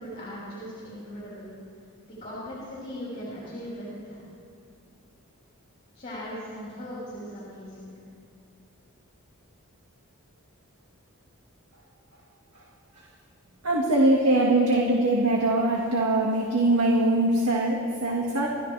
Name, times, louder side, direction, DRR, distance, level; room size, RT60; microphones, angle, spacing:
voice 1, 0.0-1.5 1.8-4.2 5.9-8.0, equal, 30° left, -8 dB, 4.4 m, -39 dB
voice 2, 13.6-18.5, right 2 dB, 85° right, -2 dB, 1.9 m, -22 dB
28.5 x 14.0 x 3.4 m, 2.3 s
head